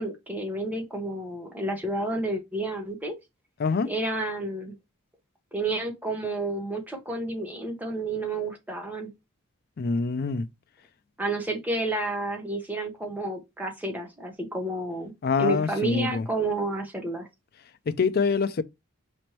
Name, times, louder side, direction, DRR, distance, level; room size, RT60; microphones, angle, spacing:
voice 1, 0.0-3.1 3.8-4.7 5.5-9.1 11.2-15.1 15.4-17.3, right 2 dB, 10° right, 0.9 m, -30 dB
voice 2, 3.6-3.9 9.8-10.5 15.2-16.3 17.9-18.6, left 4 dB, 45° left, 0.4 m, -25 dB
5.1 x 3.1 x 3.0 m
head